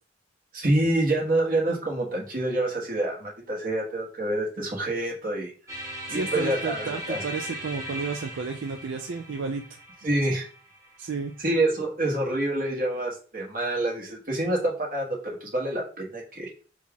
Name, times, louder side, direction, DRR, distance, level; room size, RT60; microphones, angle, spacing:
voice 1, 0.5-5.5 6.1-7.2 10.0-10.5 11.4-16.5, right 1 dB, 45° right, -1 dB, 1.4 m, -27 dB
sound 1, 5.7-11.6, equal, 15° right, 1.4 m, -38 dB
voice 2, 6.1-9.6 11.0-11.3, right 4 dB, 85° right, 5 dB, 0.4 m, -32 dB
6.2 x 2.4 x 3.5 m, 0.39 s
head